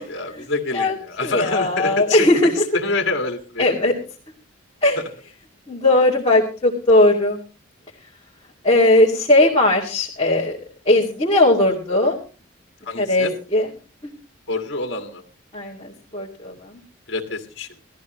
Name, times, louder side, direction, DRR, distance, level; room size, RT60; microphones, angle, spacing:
voice 1, 0.0-2.3 2.7-3.6 5.0-5.1 12.9-13.3 14.5-15.2 17.1-17.7, left 3 dB, 55° left, 3 dB, 2.1 m, -26 dB
voice 2, 1.2-2.5 3.6-3.9 4.8-5.0 5.7-7.4 8.6-10.6 10.9-12.2 13.0-13.7 15.5-16.5, left 2 dB, 25° left, -5 dB, 2.5 m, -18 dB
18.5 x 14.0 x 3.1 m, 0.35 s
head